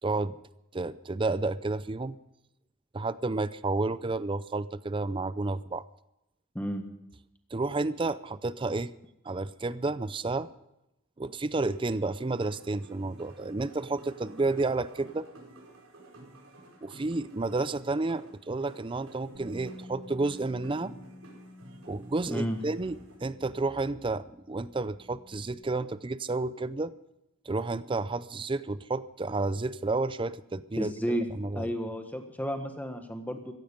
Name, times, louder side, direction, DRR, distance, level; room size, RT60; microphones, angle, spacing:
voice 1, 0.0-0.3 0.7-2.2 2.9-5.8 7.5-8.9 9.2-10.5 11.2-15.3 16.8-20.9 21.9-26.9 27.5-31.7, right 3 dB, 25° right, 16 dB, 0.5 m, -31 dB
sound 1, 11.5-23.2, right 1 dB, 85° right, 4.9 m, -51 dB
Bass guitar, 19.3-25.6, left 2 dB, 55° right, 7.3 m, -51 dB
voice 2, 30.8-31.3 31.5-33.5, equal, 10° left, 6 dB, 1.5 m, -32 dB
16.0 x 15.0 x 5.3 m, 0.87 s
head